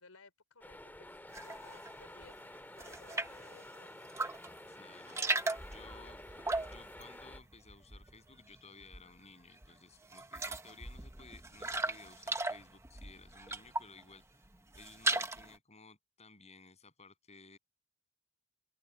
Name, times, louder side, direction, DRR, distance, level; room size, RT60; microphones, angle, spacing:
voice 1, 0.0-2.4 2.8-3.9, left 3 dB, 75° left, 4.2 m, -60 dB
sound 1, 0.6-7.4, left 1 dB, 10° left, 2.1 m, -51 dB
sound 2, 1.3-1.9 2.3-3.5 4.0-4.6 4.9-8.3 8.6-9.3 9.6-9.7 10.0-14.0 14.4-15.6, right 2 dB, 10° right, 1.0 m, -37 dB
voice 2, 4.7-6.2 6.6-14.5 14.7-17.6, left 4 dB, 30° left, 7.8 m, -57 dB
open air
head